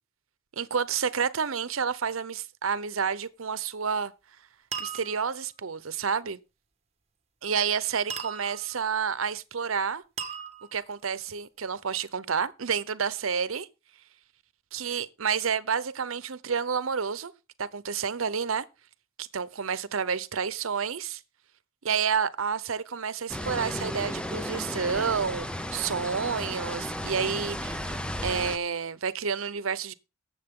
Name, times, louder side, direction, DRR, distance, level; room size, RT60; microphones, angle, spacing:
voice 1, 0.6-4.1 4.8-6.4 7.4-10.0 10.7-13.7 14.7-17.3 17.6-18.6 19.2-21.2 21.8-29.9, right 6 dB, 90° right, 0.8 m, -29 dB
sound 1, 3.7-4.1 4.7-5.4 8.1-8.8 10.2-11.0, right 7 dB, 30° right, 1.5 m, -38 dB
sound 2, 23.3-28.6, equal, 5° left, 0.6 m, -34 dB
18.5 x 7.5 x 3.7 m
head